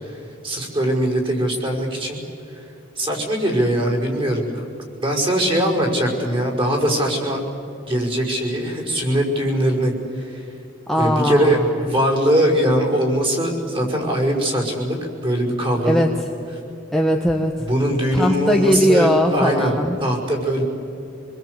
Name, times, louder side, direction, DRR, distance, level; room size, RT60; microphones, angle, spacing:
voice 1, 0.0-2.2 2.5-2.6 3.0-4.6 5.0-7.4 7.9-10.5 10.9-16.1 17.6-19.7 20.0-20.6, equal, 25° right, 1 dB, 5.7 m, -21 dB
voice 2, 10.9-11.9 15.8-16.3 16.9-17.5 18.1-20.0, equal, ahead, 0 dB, 1.4 m, -19 dB
27.5 x 21.5 x 8.2 m, 2.8 s
head